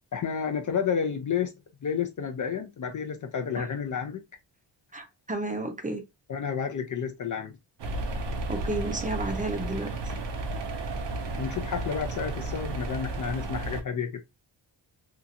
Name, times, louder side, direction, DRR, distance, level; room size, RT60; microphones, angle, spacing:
voice 1, 0.1-1.5 1.8-4.2 6.3-7.6 11.4-14.2, left 7 dB, 45° left, 0.5 m, -30 dB
voice 2, 4.9-6.0 8.5-10.0, right 2 dB, 20° right, 0.6 m, -32 dB
sound 1, 7.8-13.8, right 2 dB, 70° right, 0.7 m, -33 dB
2.8 x 2.4 x 2.5 m
wide cardioid pair, 110°, 44 cm